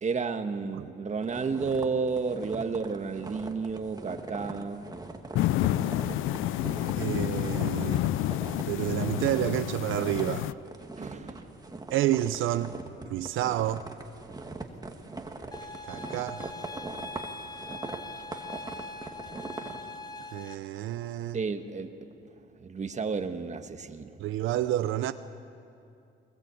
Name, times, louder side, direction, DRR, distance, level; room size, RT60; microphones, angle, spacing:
voice 1, 0.0-4.9 6.6-6.9 11.0-11.5 21.3-21.9 22.6-24.2, right 5 dB, 35° right, 8 dB, 1.5 m, -32 dB
sound 1, 1.2-8.7 8.9-9.6 9.9-19.8, right 3 dB, 20° right, 2.0 m, -41 dB
sound 2, 5.3-10.5, left 14 dB, 90° left, 0.5 m, -29 dB
voice 2, 7.0-8.0 8.7-10.5 11.9-12.7 13.1-13.8 15.9-16.4 20.3-21.4 24.2-25.1, right 13 dB, 85° right, 11 dB, 0.7 m, -29 dB
sound 3, 15.5-20.5, left 2 dB, 20° left, 1.4 m, -42 dB
22.0 x 20.5 x 8.4 m, 2.5 s
cardioid pair, 90°, 20 cm